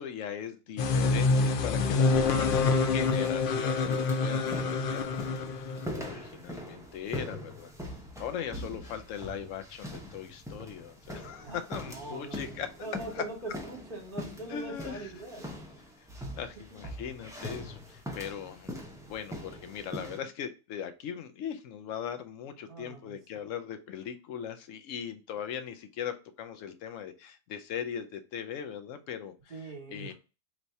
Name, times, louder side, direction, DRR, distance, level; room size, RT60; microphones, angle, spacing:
voice 1, 0.0-7.7 8.2-12.7 13.1-13.2 14.5-15.1 16.0-16.1 16.3-18.7 19.0-29.6 29.9-30.1, left 8 dB, 80° left, 9 dB, 0.9 m, -39 dB
sound 1, 0.8-6.1, left 4 dB, 60° left, 0.5 m, -27 dB
sound 2, 2.0-20.2, equal, 5° right, 0.5 m, -42 dB
voice 2, 11.8-12.4 12.8-15.5 22.7-23.2 29.5-30.1, right 2 dB, 45° right, 1 dB, 1.3 m, -41 dB
3.1 x 2.7 x 4.5 m, 0.31 s
omnidirectional pair, 1.3 m